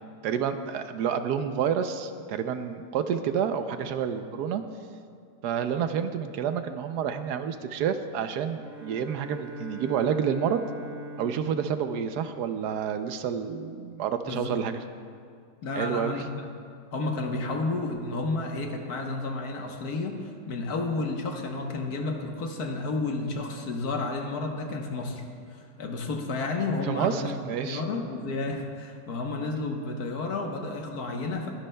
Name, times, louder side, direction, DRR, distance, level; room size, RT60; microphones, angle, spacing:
voice 1, 0.2-4.6 5.4-10.6 11.2-14.8 15.8-16.2 26.8-27.8, right 8 dB, 75° right, 9 dB, 1.1 m, -29 dB
Bowed string instrument, 8.6-13.2, right 2 dB, 15° right, 0.5 m, -43 dB
voice 2, 14.2-14.6 15.6-16.5 16.9-25.2 25.5-27.3 27.6-31.5, left 3 dB, 65° left, 3 dB, 1.5 m, -31 dB
21.5 x 11.5 x 2.2 m, 2.3 s
omnidirectional pair, 1.8 m